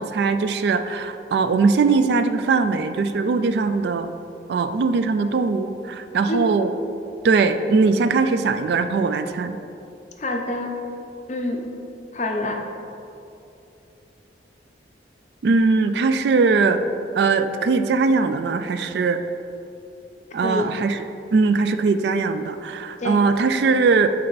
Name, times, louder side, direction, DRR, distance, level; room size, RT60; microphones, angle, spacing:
voice 1, 0.0-4.1 4.5-6.7 7.2-9.6 15.4-16.8 17.1-19.2 20.3-21.0 21.3-24.1, right 4 dB, 65° right, 10 dB, 0.3 m, -20 dB
voice 2, 10.2-10.7 11.3-11.7 12.1-12.6 20.4-20.7 23.0-23.2, left 1 dB, 40° left, 2 dB, 0.6 m, -26 dB
8.7 x 3.3 x 4.0 m, 2.7 s
head